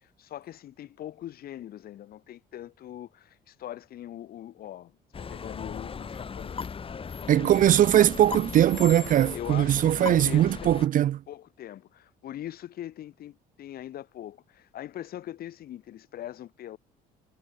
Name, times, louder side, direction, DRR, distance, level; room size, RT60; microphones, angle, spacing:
voice 1, 0.2-6.7 7.2-7.9 9.3-10.7 11.3-16.8, left 12 dB, 65° left, 3.8 m, -41 dB
sound 1, 5.1-10.9, left 6 dB, 35° left, 4.9 m, -37 dB
voice 2, 7.3-11.2, right 11 dB, 55° right, 0.7 m, -21 dB
cardioid pair, 110°, 17 cm